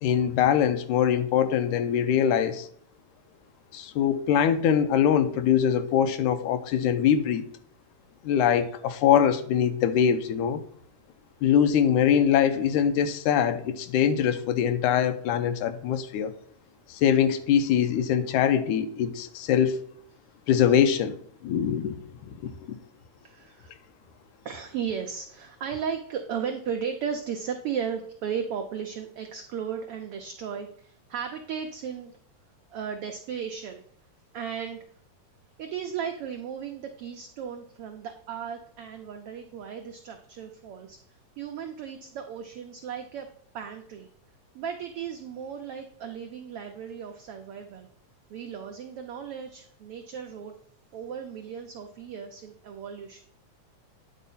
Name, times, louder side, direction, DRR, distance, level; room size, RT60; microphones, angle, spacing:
voice 1, 0.0-2.7 3.7-7.4 8.2-10.6 11.4-16.3 16.9-19.8 20.5-21.2 21.4-22.0 22.3-22.5, left 8 dB, 80° left, 2.1 m, -23 dB
voice 2, 23.2-23.7 24.4-32.2 32.7-33.8 34.3-34.8 35.6-41.0 41.4-43.3 43.5-44.1 44.5-47.9 48.3-50.5 50.9-53.2, right 7 dB, 90° right, 1.2 m, -35 dB
9.7 x 4.2 x 5.5 m
omnidirectional pair, 3.5 m